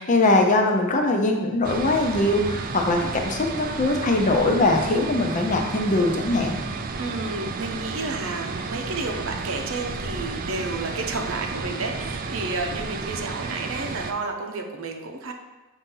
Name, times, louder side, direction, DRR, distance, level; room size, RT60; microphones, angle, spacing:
voice 1, 0.0-6.6, left 2 dB, 35° left, 2 dB, 0.7 m, -21 dB
sound 1, 1.6-14.1, right 4 dB, 40° right, 0.4 m, -32 dB
voice 2, 7.0-15.3, right 3 dB, 70° right, 3 dB, 0.8 m, -31 dB
7.0 x 2.7 x 5.4 m, 1.1 s
head